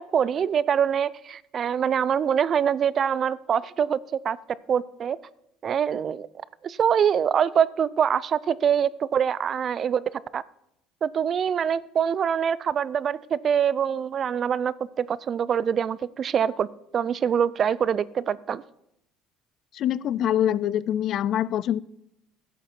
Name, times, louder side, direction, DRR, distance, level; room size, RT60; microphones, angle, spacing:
voice 1, 0.0-4.4 4.7-5.2 5.6-6.3 6.6-10.0 10.3-10.4 11.0-16.7 16.9-18.6, right 8 dB, 40° right, 20 dB, 0.3 m, -24 dB
voice 2, 19.7-21.8, left 10 dB, 55° left, 20 dB, 0.3 m, -24 dB
12.0 x 8.0 x 4.3 m, 0.79 s
cardioid pair, 115°, 0 cm